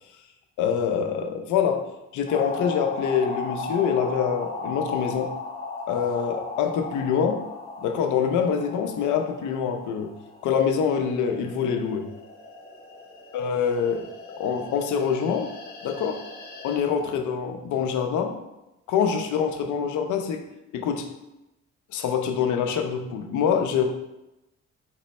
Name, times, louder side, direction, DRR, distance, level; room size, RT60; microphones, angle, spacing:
voice 1, 0.6-1.9 2.1-5.3 5.9-7.4 7.8-10.1 10.4-12.1 13.3-14.1 14.4-15.5 15.8-16.2 16.6-18.4 18.9-20.4 20.7-21.1 21.9-23.9, left 7 dB, 75° left, 6 dB, 0.6 m, -25 dB
sound 1, 2.3-16.8, left 3 dB, 30° left, 0.7 m, -37 dB
4.3 x 2.1 x 4.1 m, 0.94 s
cardioid pair, 90°, 30 cm